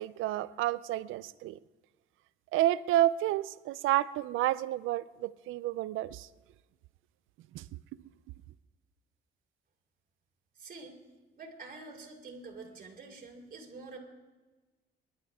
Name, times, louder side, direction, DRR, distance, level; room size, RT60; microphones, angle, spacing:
voice 1, 0.0-1.6 2.5-6.3 7.5-7.7, right 14 dB, 90° right, 0.5 m, -30 dB
voice 2, 10.6-11.0 11.3-14.0, right 3 dB, 45° right, 3.6 m, -47 dB
25.0 x 12.0 x 3.6 m
cardioid pair, 90°, 20 cm